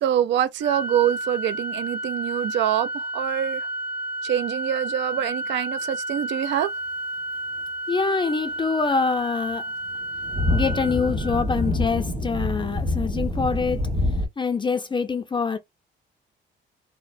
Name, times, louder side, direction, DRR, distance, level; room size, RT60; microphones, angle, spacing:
voice 1, 0.0-3.7 4.2-6.7, right 11 dB, 65° right, 0.4 m, -25 dB
Organ, 0.6-11.7, right 1 dB, 10° right, 0.7 m, -31 dB
voice 2, 7.9-9.7 10.5-13.9 14.4-15.6, left 4 dB, 25° left, 0.4 m, -25 dB
sound 1, 9.9-14.3, left 1 dB, 35° right, 1.4 m, -26 dB
2.9 x 2.0 x 2.5 m
cardioid pair, 90°, 20 cm